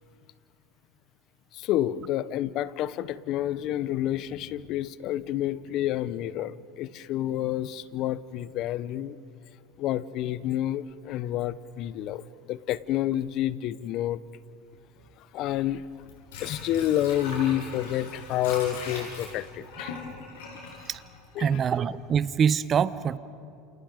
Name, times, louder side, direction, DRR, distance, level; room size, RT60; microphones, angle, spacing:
voice 1, 1.5-9.2 9.8-14.2 15.2-16.1 16.4-20.0 21.4-21.6, left 12 dB, 55° left, 17 dB, 0.8 m, -29 dB
Water / Sink (filling or washing), 15.9-21.8 22.2-22.3, left 4 dB, 85° left, 7.0 m, -40 dB
voice 2, 21.4-23.2, right 7 dB, 35° right, 15 dB, 0.9 m, -24 dB
29.5 x 28.0 x 5.2 m, 2.5 s
supercardioid pair, 105°, 0 cm